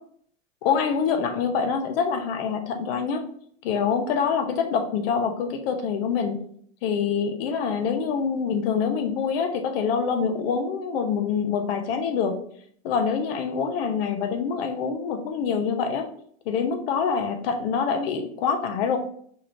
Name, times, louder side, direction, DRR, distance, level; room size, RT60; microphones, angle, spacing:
voice 1, 0.6-3.2 3.6-6.4 6.8-12.4 12.8-16.0 16.5-19.0, left 6 dB, 65° left, 6 dB, 0.9 m, -25 dB
4.8 x 3.1 x 2.6 m, 0.62 s
supercardioid pair, 115°, 31 cm